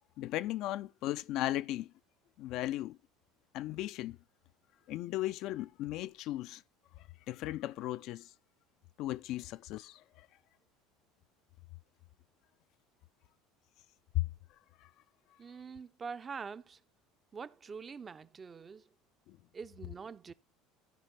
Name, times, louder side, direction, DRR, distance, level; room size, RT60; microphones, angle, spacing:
voice 1, 0.2-1.9 2.4-3.0 3.5-4.2 4.9-6.6 7.3-8.3 9.0-10.0 14.1-14.3 19.3-19.4, left 15 dB, 55° left, 0.4 m, -36 dB
voice 2, 15.4-16.8 17.3-18.9 19.5-20.3, right 5 dB, 30° right, 0.5 m, -45 dB
14.5 x 5.0 x 4.2 m
hypercardioid pair, 70°, 0 cm